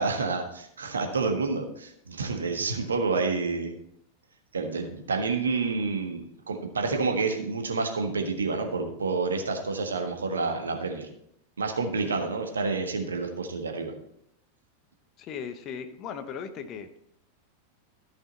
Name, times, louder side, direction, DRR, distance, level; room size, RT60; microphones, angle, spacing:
voice 1, 0.0-3.7 4.5-11.1 11.6-13.9, right 4 dB, 70° right, 4 dB, 1.5 m, -29 dB
voice 2, 15.2-16.9, left 7 dB, 35° left, 9 dB, 0.9 m, -37 dB
13.5 x 6.1 x 4.1 m, 0.74 s
figure-of-eight pair, 90°, 0 cm